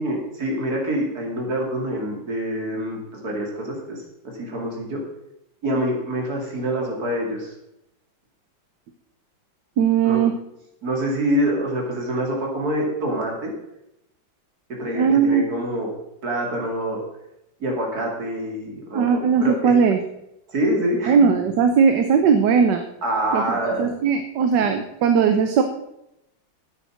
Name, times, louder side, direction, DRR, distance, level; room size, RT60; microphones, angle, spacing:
voice 1, 0.0-4.0 4.4-5.0 5.6-7.5 10.0-10.2 10.8-13.5 14.8-15.9 16.2-17.0 17.6-19.7 20.5-21.2 23.0-23.8, right 1 dB, 55° right, 0 dB, 3.1 m, -26 dB
voice 2, 9.8-10.3 14.9-15.4 18.9-20.0 21.1-22.8 23.3-25.6, right 6 dB, 70° right, 7 dB, 1.4 m, -18 dB
9.8 x 8.3 x 6.3 m, 0.84 s
omnidirectional pair, 2.0 m